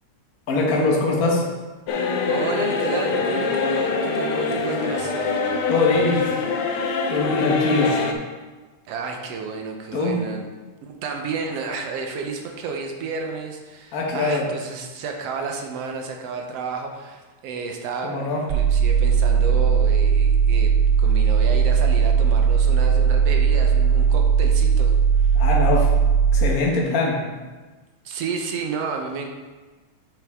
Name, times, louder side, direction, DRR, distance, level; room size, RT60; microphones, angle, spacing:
voice 1, 0.5-1.4 5.7-6.2 7.1-8.0 9.9-10.2 13.9-14.5 18.0-18.4 25.3-25.9 26.3-27.2, left 3 dB, 60° left, -2 dB, 0.9 m, -22 dB
sound 1, 1.9-8.1, left 4 dB, 80° left, 1.2 m, -24 dB
voice 2, 2.3-5.2 8.9-10.5 10.8-18.1 18.4-20.7 21.0-25.4 28.0-29.3, right 5 dB, 70° right, 3 dB, 1.7 m, -31 dB
sound 2, 18.5-26.5, right 6 dB, 85° right, 1.3 m, -18 dB
8.1 x 6.5 x 3.6 m, 1.3 s
omnidirectional pair, 3.4 m